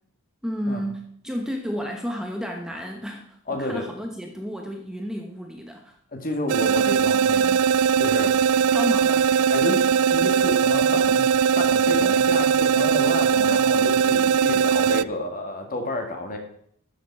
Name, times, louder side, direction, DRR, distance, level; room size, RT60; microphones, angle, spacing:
voice 1, 0.4-3.2 3.5-6.0 8.7-9.3, equal, 5° right, 2 dB, 1.0 m, -31 dB
voice 2, 3.5-3.9 6.1-8.3 9.5-9.8 10.1-11.3 11.6-16.4, left 2 dB, 40° left, 3 dB, 2.1 m, -30 dB
sound 1, 6.5-15.0, right 7 dB, 75° right, 0.3 m, -20 dB
13.0 x 7.7 x 4.8 m, 0.65 s
head